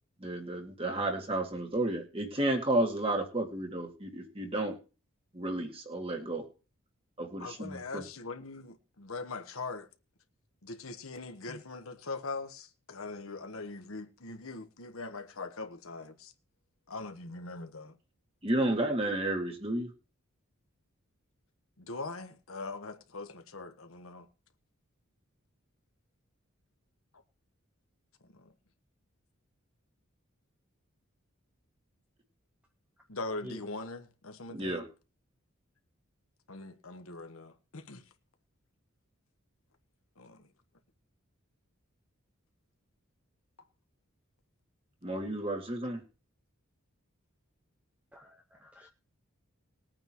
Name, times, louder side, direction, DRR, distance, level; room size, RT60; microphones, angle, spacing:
voice 1, 0.2-4.8 5.3-6.4 7.2-8.0 18.4-19.9 34.5-34.8 45.0-46.0, right 1 dB, 25° right, 2.1 m, -32 dB
voice 2, 7.4-9.9 10.6-16.3 16.9-18.0 21.8-24.3 28.4-28.5 33.1-34.8 36.5-38.0 40.2-40.5, left 3 dB, 75° left, 1.3 m, -41 dB
voice 3, 48.1-48.9, equal, 5° right, 0.7 m, -48 dB
20.5 x 8.9 x 3.1 m
head